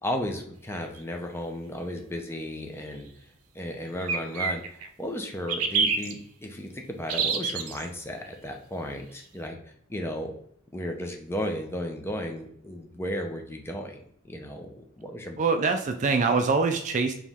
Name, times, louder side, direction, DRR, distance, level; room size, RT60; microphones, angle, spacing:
voice 1, 0.0-3.1 3.5-9.6 9.9-10.3 10.7-15.4, left 1 dB, 10° left, 3 dB, 0.6 m, -34 dB
sound 1, 1.0-1.1 4.0-4.9 5.5-6.1 7.1-7.8, right 5 dB, 90° right, 0.6 m, -26 dB
voice 2, 15.4-17.1, right 4 dB, 35° right, 6 dB, 0.4 m, -24 dB
4.6 x 3.0 x 3.6 m, 0.67 s
head